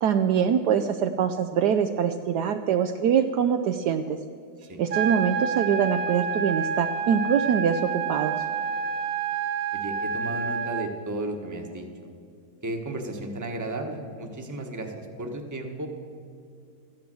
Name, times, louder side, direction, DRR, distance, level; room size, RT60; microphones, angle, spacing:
voice 1, 0.0-4.2 4.8-8.4, right 8 dB, 70° right, 8 dB, 1.0 m, -24 dB
sound 1, 4.9-10.9, right 6 dB, 55° right, 1.4 m, -28 dB
voice 2, 9.7-12.1 12.6-15.9, right 2 dB, 10° right, 3 dB, 1.0 m, -34 dB
14.0 x 10.5 x 7.6 m, 2.4 s
omnidirectional pair, 2.0 m